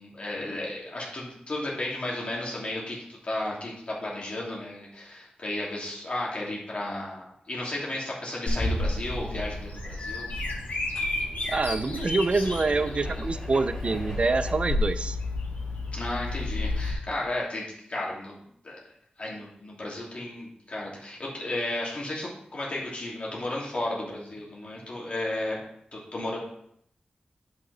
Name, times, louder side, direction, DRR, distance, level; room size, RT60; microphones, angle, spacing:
voice 1, 0.0-10.3 15.9-18.4 18.6-18.8 19.2-25.6 25.9-26.4, left 1 dB, 45° left, -4 dB, 2.9 m, -34 dB
Bird vocalization bird call bird song, 8.5-16.9, left 2 dB, 75° left, 3.2 m, -31 dB
sound 1, 9.5-14.5, left 1 dB, 20° left, 2.7 m, -43 dB
voice 2, 11.5-15.2, right 3 dB, 40° right, 11 dB, 0.5 m, -26 dB
10.5 x 5.6 x 4.2 m, 0.72 s
wide cardioid pair, 135°, 3 cm